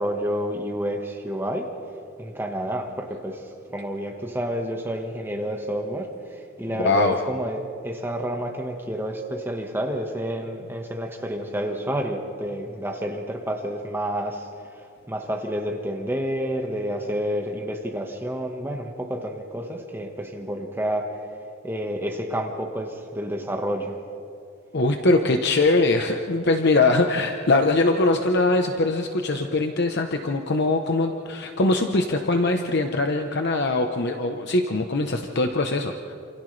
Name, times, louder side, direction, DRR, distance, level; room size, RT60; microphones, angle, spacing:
voice 1, 0.0-1.7 2.2-3.4 3.7-14.5 15.1-21.2 21.6-24.0, equal, 10° right, 3 dB, 1.4 m, -29 dB
voice 2, 6.7-7.2 24.7-36.1, left 2 dB, 55° left, 4 dB, 1.0 m, -22 dB
28.5 x 27.5 x 3.3 m, 2.5 s
head